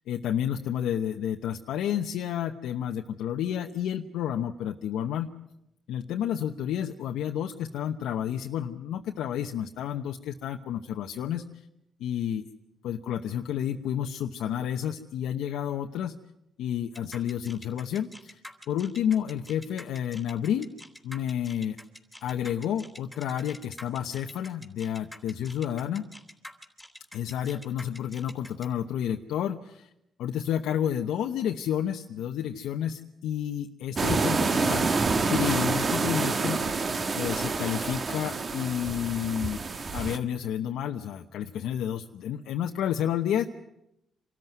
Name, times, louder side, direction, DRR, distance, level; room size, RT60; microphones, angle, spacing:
voice 1, 0.1-5.3 5.9-11.7 12.0-12.4 12.8-16.1 16.6-18.4 18.7-20.7 21.0-21.8 22.2-26.0 27.1-29.9 30.2-34.9 35.3-36.9 37.1-39.6 39.9-43.4, left 9 dB, 85° left, 3 dB, 1.0 m, -30 dB
sound 1, 16.9-28.7, left 1 dB, 5° left, 3.4 m, -46 dB
sound 2, 34.0-40.2, right 4 dB, 40° right, 1.6 m, -27 dB
26.0 x 13.5 x 9.4 m, 0.85 s
cardioid pair, 90°, 0 cm